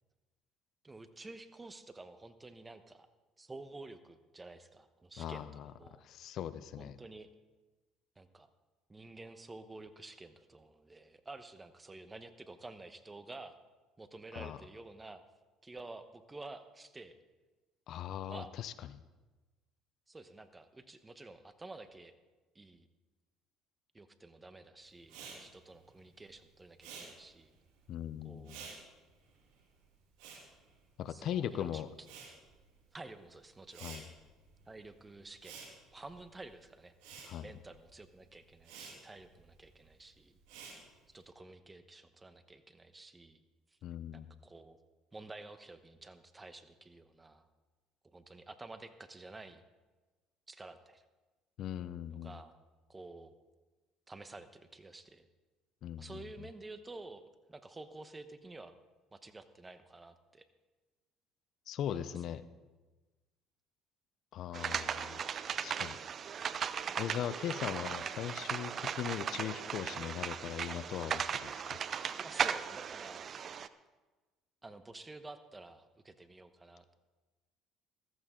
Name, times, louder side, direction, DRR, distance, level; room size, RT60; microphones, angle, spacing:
voice 1, 0.8-3.1 3.4-6.0 6.8-7.3 8.2-8.5 8.9-13.6 14.0-15.2 15.6-17.2 18.3-18.5 20.1-22.2 22.5-22.9 23.9-27.6 28.2-28.6 31.1-32.1 32.9-33.9 34.7-35.6 35.9-40.4 41.1-43.4 43.7-43.8 44.1-44.8 45.1-47.5 48.0-49.6 50.5-51.0 52.1-52.5 52.9-53.3 54.1-55.3 56.0-58.8 59.1-60.5 61.9-62.2 72.2-73.3 74.6-76.9, right 2 dB, 20° right, 11 dB, 1.1 m, -51 dB
voice 2, 5.2-5.7 6.0-7.0 14.3-14.6 17.9-18.7 27.9-28.6 31.0-31.9 33.8-34.0 37.3-37.4 43.8-44.3 51.6-52.3 55.8-56.2 61.7-62.4 64.3-65.3 65.5-66.0 67.0-71.8, left 10 dB, 60° left, 15 dB, 0.6 m, -39 dB
Respiratory sounds, 25.0-31.5 31.8-41.2, right 5 dB, 80° right, 2.9 m, -53 dB
sound 1, 64.5-73.7, right 7 dB, 45° right, 0.5 m, -37 dB
14.5 x 14.0 x 3.8 m, 1.2 s
supercardioid pair, 80°, 0 cm